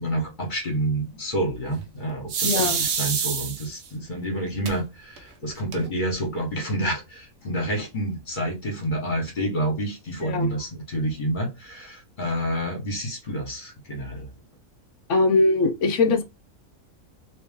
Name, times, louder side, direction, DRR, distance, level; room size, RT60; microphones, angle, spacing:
voice 1, 0.0-14.3, right 1 dB, 35° left, 1.4 m, -28 dB
sound 1, 2.3-3.9 4.7-4.8 5.2-5.3 5.5-6.1, right 6 dB, 70° right, 1.1 m, -26 dB
voice 2, 2.4-2.8 10.2-10.5 15.1-16.2, left 3 dB, 65° left, 0.9 m, -21 dB
3.0 x 2.9 x 3.6 m
omnidirectional pair, 1.5 m